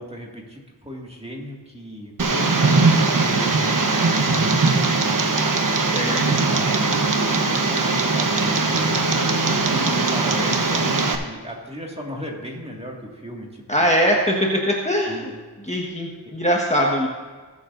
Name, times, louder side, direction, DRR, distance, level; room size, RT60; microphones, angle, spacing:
voice 1, 0.0-2.1 3.0-5.5 6.0-9.1 9.6-13.9 15.1-15.3, equal, 15° right, -1 dB, 2.1 m, -36 dB
Tick, 2.2-11.2, right 3 dB, 50° right, 1.1 m, -20 dB
voice 2, 2.3-3.0 5.8-6.2 13.7-15.3 15.6-17.1, equal, 15° left, -2 dB, 1.4 m, -22 dB
19.5 x 7.2 x 2.6 m, 1.4 s
wide cardioid pair, 50°, 41 cm